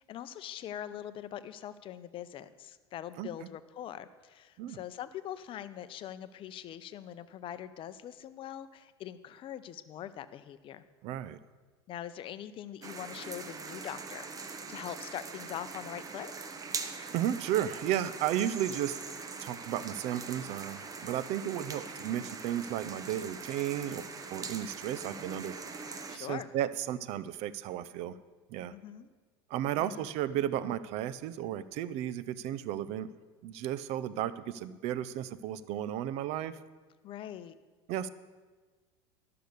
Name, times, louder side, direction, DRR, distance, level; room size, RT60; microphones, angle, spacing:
voice 1, 0.0-10.8 11.9-16.3 26.1-26.5 28.7-29.1 29.8-30.1 37.0-37.6, left 11 dB, 40° left, 13 dB, 0.6 m, -43 dB
voice 2, 11.0-11.4 17.1-19.0 19.4-24.1 24.3-25.5 26.1-28.2 28.5-28.7 29.5-33.1 33.4-36.6 37.9-38.1, right 11 dB, 55° right, 16 dB, 0.6 m, -34 dB
sound 1, 12.8-26.2, right 4 dB, 25° right, 1.0 m, -42 dB
12.0 x 6.8 x 6.6 m, 1.4 s
hypercardioid pair, 95°, 13 cm